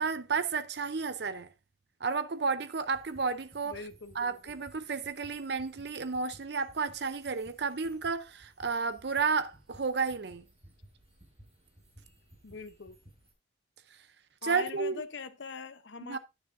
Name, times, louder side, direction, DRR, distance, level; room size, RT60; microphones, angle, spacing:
voice 1, 0.0-1.5 2.0-3.8 4.1-10.4 14.4-15.0 16.0-16.2, right 4 dB, 55° right, 0.6 m, -32 dB
sound 1, 2.8-13.3, right 1 dB, 30° right, 5.0 m, -58 dB
voice 2, 3.6-4.5 12.4-13.0 14.4-16.2, left 4 dB, 65° left, 0.8 m, -42 dB
10.0 x 9.1 x 2.6 m
head